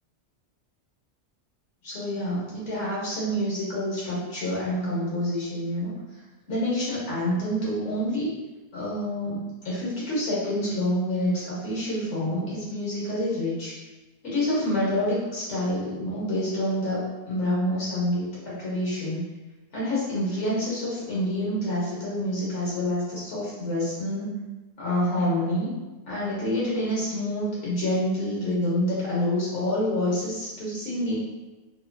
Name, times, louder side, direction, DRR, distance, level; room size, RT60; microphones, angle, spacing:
voice 1, 1.8-5.9 6.5-8.3 8.7-13.7 14.2-19.2 19.7-24.3 24.8-25.7 26.1-31.2, left 1 dB, 80° left, -7 dB, 1.4 m, -27 dB
2.9 x 2.4 x 2.2 m, 1.1 s
omnidirectional pair, 1.2 m